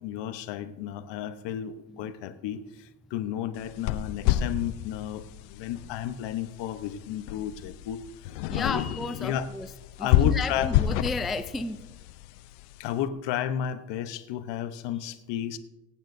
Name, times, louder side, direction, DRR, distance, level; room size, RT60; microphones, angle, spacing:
voice 1, 0.0-8.8 9.2-9.5 10.0-10.7 12.8-15.6, left 10 dB, 65° left, 11 dB, 1.0 m, -33 dB
sound 1, 3.5-12.9, left 13 dB, 85° left, 0.7 m, -30 dB
voice 2, 8.5-9.7 10.0-11.9, left 3 dB, ahead, 8 dB, 0.3 m, -33 dB
23.5 x 9.0 x 2.6 m, 1.1 s
supercardioid pair, 105°, 47 cm